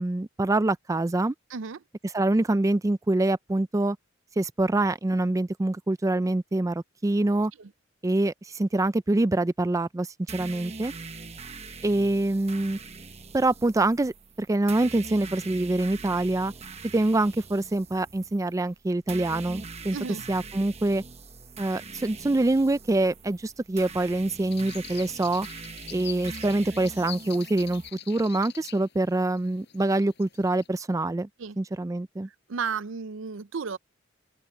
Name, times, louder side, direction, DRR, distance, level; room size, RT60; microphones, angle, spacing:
voice 1, 0.0-1.3 2.0-4.0 4.4-7.5 8.0-10.9 11.8-12.8 13.3-14.1 14.4-16.5 16.9-20.0 20.3-21.0 21.6-25.5 25.9-31.3 31.6-32.3, right 2 dB, 15° right, 0.4 m, -25 dB
sound 1, 10.3-27.9, right 4 dB, 35° right, 1.1 m, -43 dB
sound 2, 24.5-30.7, left 10 dB, 60° left, 6.4 m, -45 dB
voice 2, 32.5-33.8, right 5 dB, 70° right, 0.5 m, -33 dB
open air
head